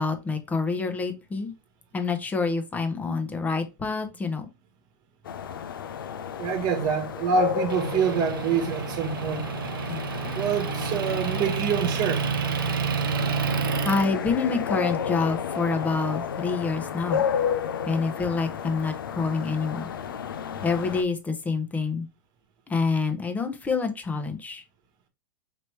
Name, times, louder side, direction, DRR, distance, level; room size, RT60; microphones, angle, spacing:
voice 1, 0.0-1.5 1.9-4.5 9.9-10.0 13.8-17.2 17.8-19.9 20.6-22.1 22.7-24.6, left 4 dB, 15° left, 0.8 m, -27 dB
sound 1, 5.2-21.0, left 8 dB, 85° left, 0.5 m, -32 dB
voice 2, 6.4-9.4 10.3-12.2, right 6 dB, 40° right, 1.3 m, -26 dB
Motor vehicle (road) / Engine, 7.7-14.1, right 8 dB, 80° right, 0.5 m, -29 dB
4.6 x 3.0 x 3.1 m
hypercardioid pair, 120°, 11 cm